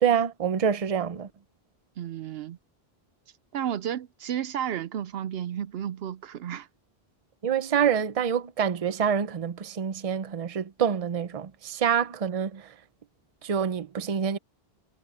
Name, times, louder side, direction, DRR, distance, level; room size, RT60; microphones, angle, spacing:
voice 1, 0.0-1.3 7.4-12.7 13.4-14.4, right 8 dB, 40° right, 0.7 m, -26 dB
voice 2, 2.0-2.6 3.5-6.7, right 10 dB, 70° right, 0.8 m, -32 dB
omnidirectional pair, 1.1 m